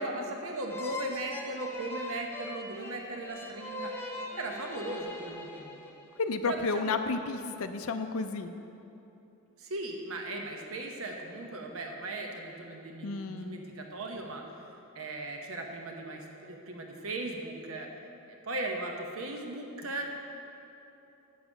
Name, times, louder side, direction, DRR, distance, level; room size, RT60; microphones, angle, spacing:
voice 1, 0.0-3.9 4.4-5.9 6.4-6.9 7.4-7.6 9.6-14.4 14.9-17.9 18.4-20.2, right 2 dB, 65° right, 2 dB, 0.8 m, -38 dB
sound 1, 0.7-6.2, left 2 dB, 10° left, 0.7 m, -41 dB
voice 2, 6.2-8.5 13.0-13.6, left 4 dB, 65° left, 7 dB, 0.4 m, -32 dB
8.2 x 7.0 x 6.2 m, 2.9 s
head